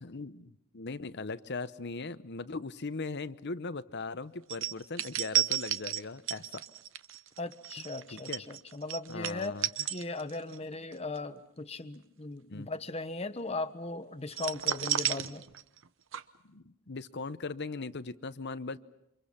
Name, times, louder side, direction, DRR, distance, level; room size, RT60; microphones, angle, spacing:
voice 1, 0.0-6.6 8.1-8.4 9.1-9.7 12.5-12.7 16.4-18.8, left 3 dB, 50° left, 13 dB, 0.9 m, -39 dB
sound 1, 4.5-10.6 10.9-11.2 14.3-15.9 16.1-16.2, right 13 dB, 60° right, 0.9 m, -33 dB
voice 2, 7.4-9.6 9.9-15.5, left 2 dB, 30° left, 11 dB, 1.1 m, -38 dB
29.0 x 26.0 x 5.8 m, 0.82 s
head